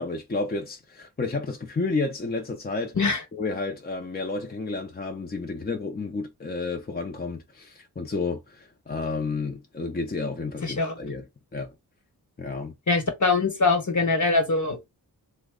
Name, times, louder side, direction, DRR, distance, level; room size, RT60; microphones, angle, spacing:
voice 1, 0.0-2.9 3.3-11.3 11.5-11.7 12.4-12.7, left 3 dB, 25° left, 0.5 m, -31 dB
voice 2, 10.6-10.9 12.9-14.9, left 3 dB, 50° left, 1.1 m, -23 dB
3.1 x 2.1 x 3.6 m
wide cardioid pair, 85°, 38 cm